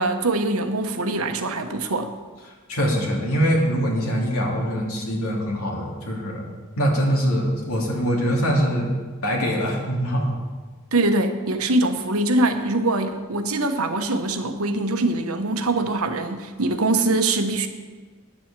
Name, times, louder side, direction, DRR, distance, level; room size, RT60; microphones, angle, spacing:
voice 1, 0.0-2.1 10.9-17.7, right 2 dB, 80° right, 7 dB, 1.0 m, -23 dB
voice 2, 2.7-6.5 6.8-8.9 9.2-10.3, equal, 80° left, -1 dB, 2.6 m, -23 dB
10.0 x 7.5 x 7.5 m, 1.4 s
head